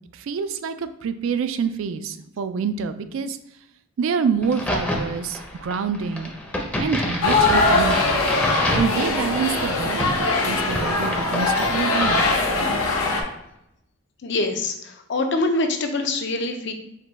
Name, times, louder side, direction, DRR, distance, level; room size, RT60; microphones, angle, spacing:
voice 1, 0.1-3.4 4.0-6.3 6.8-8.2 8.7-12.3, right 6 dB, 70° right, 11 dB, 0.3 m, -27 dB
Crack, 4.4-13.0, left 1 dB, 5° left, 0.5 m, -30 dB
sound 1, 7.2-13.2, left 3 dB, 90° left, 0.8 m, -21 dB
voice 2, 14.2-16.7, left 2 dB, 55° left, 5 dB, 0.5 m, -24 dB
5.0 x 2.2 x 4.0 m, 0.82 s
head